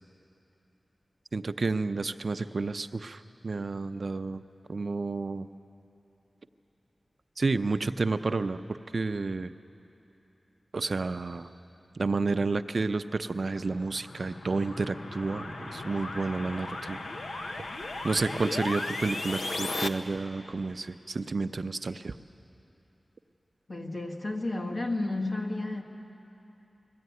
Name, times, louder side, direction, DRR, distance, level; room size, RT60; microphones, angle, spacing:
voice 1, 1.3-4.4 4.7-5.5 7.4-9.5 10.7-11.5 11.9-17.0 17.6-17.7 18.0-22.2, right 3 dB, 60° right, 10 dB, 0.6 m, -30 dB
sound 1, 13.4-19.9, left 2 dB, 90° left, 0.8 m, -36 dB
voice 2, 23.7-25.8, left 2 dB, 55° left, 0 dB, 1.7 m, -32 dB
20.5 x 14.5 x 9.4 m, 2.9 s
wide cardioid pair, 95°, 0 cm